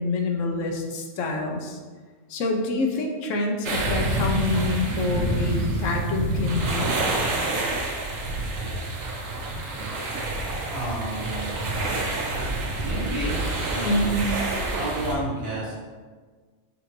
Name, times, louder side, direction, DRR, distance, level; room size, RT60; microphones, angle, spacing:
voice 1, 0.0-1.8 2.3-6.9 13.8-14.2, left 2 dB, 75° left, 2 dB, 1.0 m, -27 dB
sound 1, 3.6-15.1, right 2 dB, 85° right, 1.0 m, -27 dB
sound 2, 9.9-14.7, equal, 50° left, 1.0 m, -37 dB
voice 2, 10.7-11.7 12.8-14.2 14.7-15.7, right 1 dB, 25° right, -9 dB, 1.1 m, -31 dB
5.0 x 2.6 x 3.0 m, 1.4 s
omnidirectional pair, 1.3 m